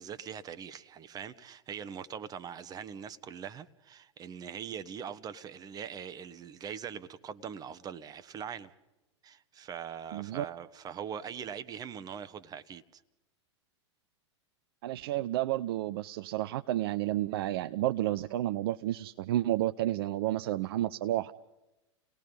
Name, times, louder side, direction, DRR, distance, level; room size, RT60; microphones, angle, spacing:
voice 1, 0.0-8.7 9.2-13.0, right 8 dB, 25° right, 1.2 m, -42 dB
voice 2, 10.1-10.4 14.8-21.3, right 14 dB, 55° right, 0.6 m, -31 dB
30.0 x 19.0 x 5.5 m
figure-of-eight pair, 95°, 15 cm